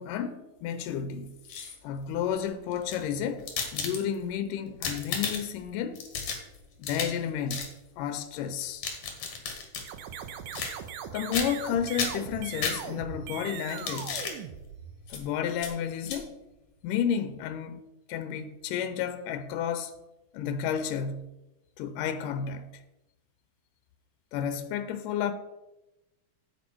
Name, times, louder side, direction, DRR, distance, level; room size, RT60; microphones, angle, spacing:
voice 1, 0.0-1.4 1.8-6.0 6.8-8.8 11.1-14.3 15.1-16.3 16.8-17.8 18.1-19.9 20.3-21.3 21.8-22.8 24.3-25.3, left 8 dB, 90° left, 2.3 m, -32 dB
sound 1, 1.3-2.0 2.7-4.3 4.7-5.6 6.0-7.2 7.5-7.7 8.6-9.9 10.5-11.0 11.3-11.7 12.0-13.2 13.7-14.4 15.1-15.2 15.6-15.7 16.0-16.2, left 5 dB, 65° left, 2.9 m, -34 dB
sound 2, 9.8-15.2, right 8 dB, 85° right, 2.3 m, -40 dB
9.6 x 8.4 x 4.6 m
omnidirectional pair, 3.7 m